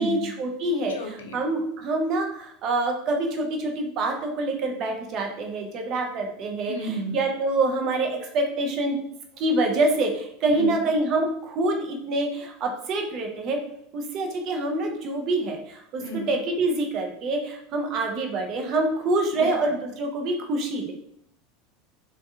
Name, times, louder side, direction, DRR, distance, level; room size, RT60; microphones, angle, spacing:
voice 1, 0.0-9.0 9.3-13.6 13.9-20.9, right 2 dB, 45° right, 3 dB, 0.7 m, -26 dB
voice 2, 0.9-1.4 6.7-7.2 10.5-10.8 16.0-16.3 19.3-19.5, right 1 dB, 70° left, 3 dB, 0.5 m, -32 dB
3.5 x 2.3 x 2.7 m, 0.71 s
figure-of-eight pair, 80°, 0 cm